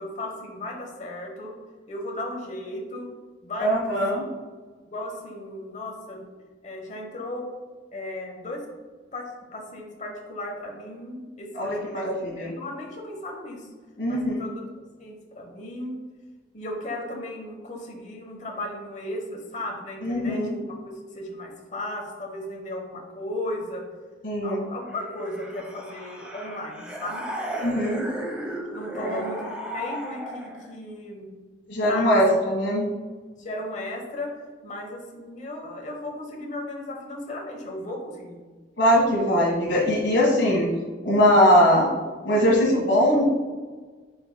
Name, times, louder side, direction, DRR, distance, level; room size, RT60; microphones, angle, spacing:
voice 1, 0.0-1.6 1.9-3.1 3.4-4.0 4.8-6.3 6.6-7.5 7.9-8.6 9.1-13.7 14.1-14.6 15.0-15.9 16.5-23.8 24.4-27.3 28.7-31.3 31.8-32.2 33.3-34.3 34.6-38.4, left 1 dB, 40° left, 0 dB, 1.0 m, -35 dB
voice 2, 3.6-4.2 11.5-12.5 14.0-14.5 20.0-20.6 24.2-24.6 27.6-28.1 28.9-29.2 31.7-32.9 38.8-40.7 41.0-41.9 42.2-43.2, equal, 85° left, -4 dB, 1.5 m, -21 dB
sound 1, 24.9-30.7, equal, 5° right, 0.8 m, -35 dB
8.3 x 5.2 x 2.2 m, 1.4 s
head